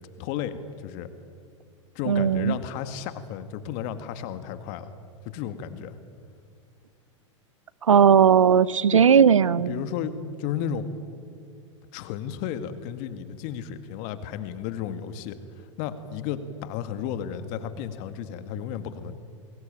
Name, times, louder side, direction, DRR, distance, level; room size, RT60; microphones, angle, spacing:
voice 1, 0.2-1.1 2.0-4.9 5.3-6.0 8.9-9.0 9.6-10.9 11.9-19.1, left 9 dB, 50° left, 10 dB, 2.0 m, -33 dB
voice 2, 2.1-2.6 7.9-9.8, right 7 dB, 85° right, 21 dB, 0.7 m, -17 dB
29.5 x 21.5 x 8.9 m, 2.2 s
hypercardioid pair, 95°, 16 cm